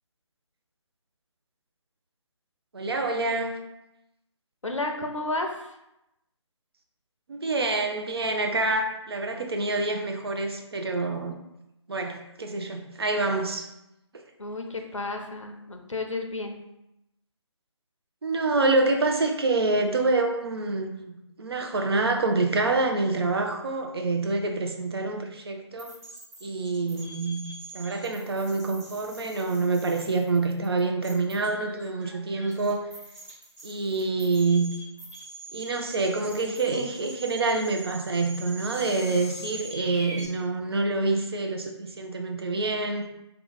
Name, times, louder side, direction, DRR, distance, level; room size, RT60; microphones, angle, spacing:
voice 1, 2.7-3.6 7.3-11.4 11.9-13.7 18.2-21.1 21.4-26.0 26.4-27.4 27.7-32.9 33.6-34.7 35.5-43.1, right 3 dB, 55° right, 3 dB, 0.5 m, -26 dB
voice 2, 4.6-5.8 14.4-16.6, left 2 dB, 90° left, 4 dB, 0.6 m, -32 dB
sound 1, 25.8-40.3, right 2 dB, 30° right, 1.1 m, -43 dB
2.8 x 2.2 x 3.9 m, 0.88 s
figure-of-eight pair, 150°, 16 cm